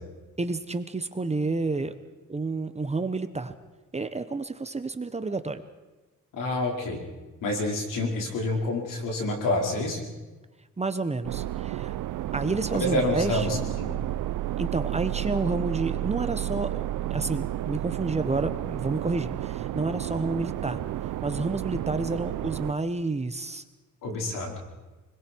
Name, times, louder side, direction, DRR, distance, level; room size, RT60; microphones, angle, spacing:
voice 1, 0.4-2.0 2.3-3.5 3.9-5.6 10.8-11.9 12.3-13.6 14.6-16.8 17.1-20.8 21.2-23.6, right 3 dB, 20° right, 10 dB, 1.1 m, -30 dB
voice 2, 6.3-7.0 7.4-10.1 12.8-14.0 24.0-24.6, left 1 dB, 80° left, 0 dB, 5.3 m, -28 dB
sound 1, 11.2-22.7, right 13 dB, 75° right, 0.7 m, -31 dB
28.5 x 21.5 x 4.7 m, 1.2 s
cardioid pair, 100°, 32 cm